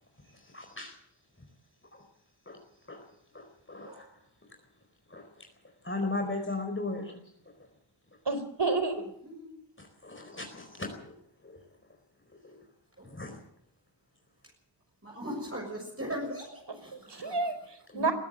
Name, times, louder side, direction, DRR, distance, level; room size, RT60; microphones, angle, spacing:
voice 1, 0.3-1.0 1.9-2.0 2.5-2.6 2.9-3.1 3.3-4.1 5.1-5.5 5.8-7.2 9.8-11.1 11.4-11.6 12.4-12.6 13.0-13.4 17.2-17.3 17.9-18.1, left 2 dB, 25° left, 3 dB, 4.5 m, -37 dB
voice 2, 3.8-4.1 6.2-6.3 9.2-9.6 13.0-13.1 15.0-17.5, equal, 30° right, -1 dB, 6.9 m, -40 dB
voice 3, 8.3-9.0 17.1-18.1, right 3 dB, 65° right, 10 dB, 4.3 m, -30 dB
22.0 x 15.0 x 8.0 m, 0.72 s
wide cardioid pair, 70°, 44 cm